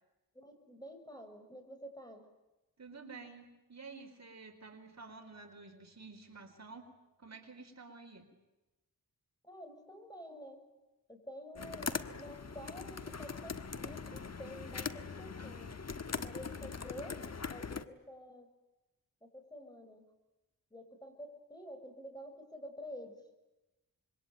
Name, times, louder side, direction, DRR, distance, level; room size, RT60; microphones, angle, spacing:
voice 1, 0.3-2.2 9.4-10.6 11.1-15.8 16.1-17.2 17.5-18.5 19.2-20.1 20.7-23.2, equal, 10° left, 5 dB, 6.4 m, -49 dB
voice 2, 2.8-6.9 7.2-8.3, right 4 dB, 45° right, 4 dB, 4.2 m, -51 dB
sound 1, 11.6-17.8, left 5 dB, 45° left, 1.4 m, -41 dB
26.5 x 23.0 x 9.2 m, 1.0 s
wide cardioid pair, 80°, 36 cm